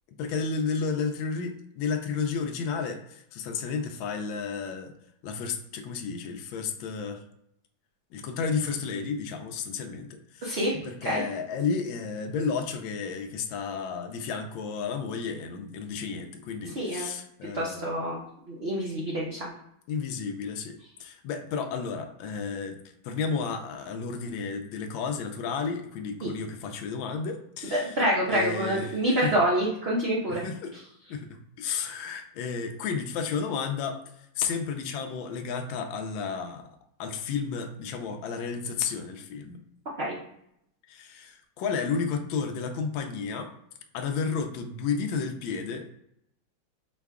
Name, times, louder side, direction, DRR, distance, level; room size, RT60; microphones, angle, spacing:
voice 1, 0.2-4.9 5.2-7.2 8.1-18.0 19.9-22.8 23.0-28.0 28.3-29.4 30.3-30.7 31.1-31.3 31.6-34.0 34.4-36.7 37.0-39.6 40.9-43.5 43.9-45.9, left 5 dB, 85° left, 5 dB, 1.4 m, -32 dB
voice 2, 10.4-10.8 11.0-11.2 16.8-17.1 17.5-18.2 18.5-19.5 26.2-26.3 27.7-30.4 40.0-40.1, right 1 dB, 60° right, -4 dB, 0.6 m, -27 dB
4.8 x 2.2 x 3.5 m, 0.75 s
omnidirectional pair, 2.1 m